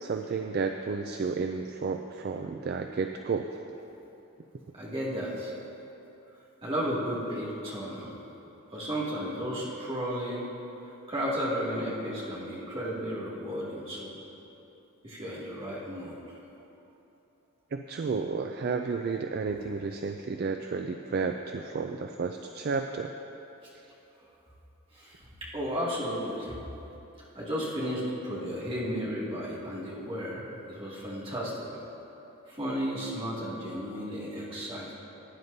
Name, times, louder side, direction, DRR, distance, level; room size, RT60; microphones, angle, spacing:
voice 1, 0.0-3.6 17.7-23.1 23.7-23.8, right 4 dB, 45° right, 5 dB, 0.3 m, -32 dB
voice 2, 4.7-5.5 6.6-8.1 8.7-10.4 11.1-14.1 15.0-16.2 24.9-25.2 25.5-26.6 27.3-31.7 32.5-34.9, equal, 25° right, -7 dB, 2.3 m, -33 dB
17.0 x 9.4 x 2.7 m, 3.0 s
head